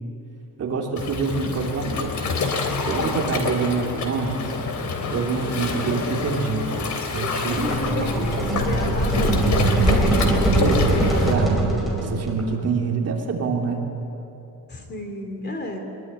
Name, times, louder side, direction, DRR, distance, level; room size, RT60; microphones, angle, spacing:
voice 1, 0.6-2.3 2.9-4.4 5.1-8.4 10.6-11.6 12.0-13.8, right 4 dB, 40° right, 0 dB, 3.2 m, -26 dB
Waves surf, 1.0-11.3, left 4 dB, 50° left, 3.4 m, -27 dB
voice 2, 3.0-3.5 7.4-10.2 14.7-15.8, left 1 dB, 30° left, 4 dB, 3.0 m, -33 dB
sound 1, 7.5-12.4, right 1 dB, ahead, 5.1 m, -21 dB
24.0 x 22.5 x 9.9 m, 2.9 s
cardioid pair, 175°, 36 cm